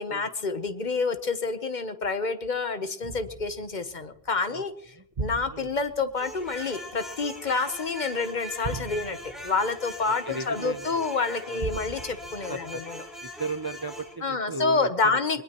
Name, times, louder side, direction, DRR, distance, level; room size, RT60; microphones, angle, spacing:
voice 1, 0.0-4.7 5.2-13.0 14.2-15.4, left 4 dB, 45° left, 10 dB, 1.1 m, -28 dB
sound 1, 3.0-8.0 8.6-11.0 11.6-13.6 14.1-14.2, right 3 dB, 45° right, 1.1 m, -40 dB
sound 2, 6.1-14.1, left 1 dB, ahead, 4.9 m, -41 dB
voice 2, 10.2-11.0 11.4-11.8 12.5-12.8 13.2-15.4, right 2 dB, 30° right, 10 dB, 0.5 m, -36 dB
22.5 x 21.0 x 3.0 m, 0.67 s
omnidirectional pair, 1.1 m